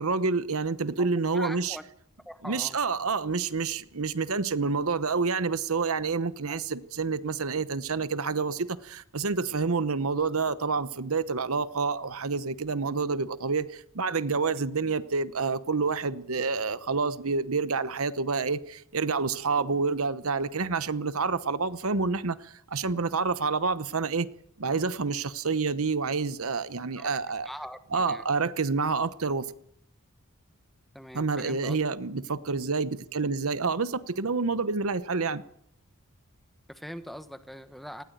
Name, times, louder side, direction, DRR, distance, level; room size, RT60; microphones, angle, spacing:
voice 1, 0.0-1.8 2.4-24.3 24.6-27.5 27.9-29.5 31.1-35.4, right 4 dB, 70° right, 0.9 m, -28 dB
voice 2, 1.0-1.9 2.2-2.8 6.5-6.6 14.5-14.6 19.6-19.7 24.7-24.8 26.9-28.3 30.9-31.8 36.7-38.0, equal, ahead, 1.2 m, -42 dB
19.5 x 16.5 x 9.2 m
head